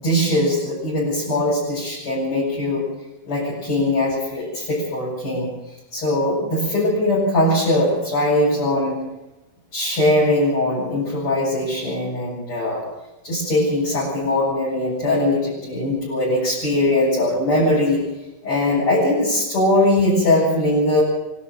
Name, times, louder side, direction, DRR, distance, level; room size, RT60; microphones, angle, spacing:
voice 1, 0.0-2.9 3.2-5.6 5.9-9.1 9.7-12.9 13.2-18.0 18.4-21.0, left 1 dB, 30° left, -7 dB, 8.9 m, -20 dB
25.0 x 13.5 x 7.6 m, 1.0 s
omnidirectional pair, 4.6 m